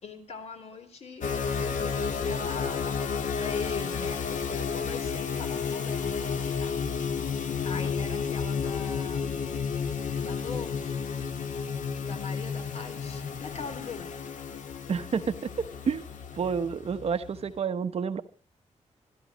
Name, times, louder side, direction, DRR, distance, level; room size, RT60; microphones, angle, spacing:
voice 1, 0.0-6.9 7.6-9.3 10.2-11.0 12.0-14.2, left 5 dB, 55° left, 7 dB, 3.8 m, -41 dB
sound 1, 1.2-17.5, left 6 dB, 90° left, 1.8 m, -32 dB
voice 2, 14.9-16.0 16.3-18.2, right 6 dB, 50° right, 10 dB, 1.1 m, -29 dB
26.5 x 12.5 x 3.1 m, 0.34 s
wide cardioid pair, 175°, 13 cm